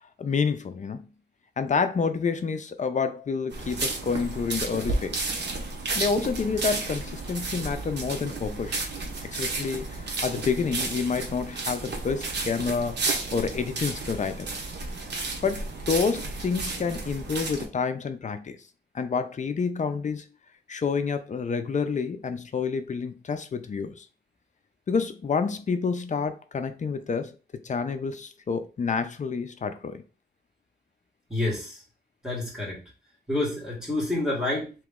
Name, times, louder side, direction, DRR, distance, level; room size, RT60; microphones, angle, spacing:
voice 1, 0.2-1.1 1.6-5.3 5.9-8.8 9.2-13.0 13.3-14.5 15.4-18.6 18.9-20.2 20.7-24.1 24.9-27.3 27.6-30.0, left 5 dB, 45° left, 0.4 m, -28 dB
sound 1, 3.5-17.7, right 3 dB, 80° right, 0.9 m, -32 dB
voice 2, 31.3-31.8 32.2-32.8 33.3-34.7, left 2 dB, 5° right, 1.9 m, -28 dB
3.0 x 3.0 x 3.6 m
wide cardioid pair, 130°, 18 cm